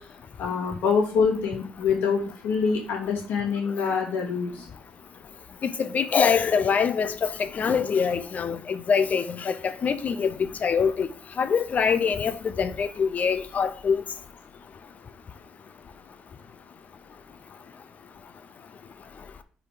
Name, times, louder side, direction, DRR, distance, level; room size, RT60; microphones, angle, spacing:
voice 1, 0.4-4.6, left 5 dB, 70° left, 2.5 m, -25 dB
voice 2, 5.8-10.3 10.6-11.1 11.4-12.3 12.6-14.0, left 6 dB, 50° left, 0.6 m, -24 dB
4.9 x 4.9 x 4.7 m
supercardioid pair, 70°, 3 cm